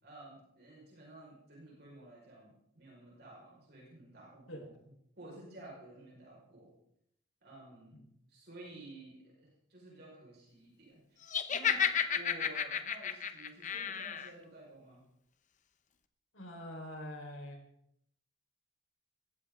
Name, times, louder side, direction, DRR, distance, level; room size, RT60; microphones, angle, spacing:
voice 1, 0.0-4.7 5.2-6.7 7.4-15.1, right 1 dB, 55° right, -3 dB, 5.4 m, -53 dB
Laughter, 11.3-14.3, left 8 dB, 40° left, 0.9 m, -32 dB
voice 2, 16.3-17.6, left 1 dB, 90° left, 2 dB, 4.8 m, -44 dB
20.5 x 15.5 x 3.9 m, 0.74 s
head